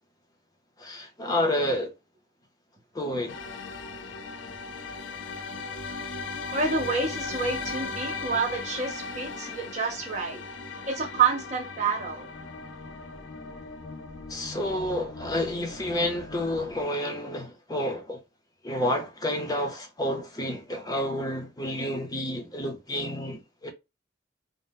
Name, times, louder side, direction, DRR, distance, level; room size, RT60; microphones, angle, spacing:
voice 1, 0.8-1.9 2.9-3.4 9.4-9.5 14.3-18.2 18.6-23.7, left 1 dB, 20° left, 0.6 m, -30 dB
sound 1, 3.3-16.8, left 4 dB, 90° left, 0.5 m, -38 dB
voice 2, 6.5-10.4 10.9-12.3, right 5 dB, 40° right, 0.6 m, -28 dB
2.6 x 2.0 x 3.4 m
head